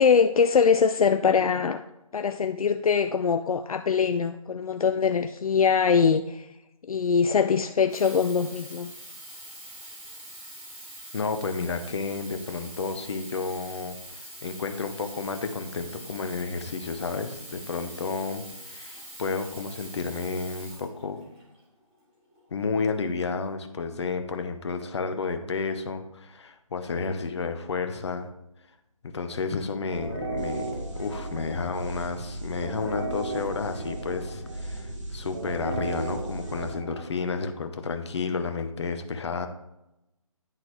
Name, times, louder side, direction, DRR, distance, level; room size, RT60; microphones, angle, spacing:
voice 1, 0.0-1.8 2.1-6.5 6.9-8.9, left 6 dB, 75° left, 7 dB, 0.4 m, -22 dB
Sink (filling or washing), 7.8-21.6 22.3-22.4, right 1 dB, 25° right, 1.8 m, -44 dB
voice 2, 11.1-14.0 14.4-21.2 22.5-28.3 29.0-30.7 30.9-39.5, left 4 dB, 50° left, 7 dB, 0.8 m, -31 dB
sound 1, 29.9-37.6, right 2 dB, 55° right, 1.6 m, -35 dB
10.5 x 3.8 x 3.1 m, 0.91 s
figure-of-eight pair, 155°, 18 cm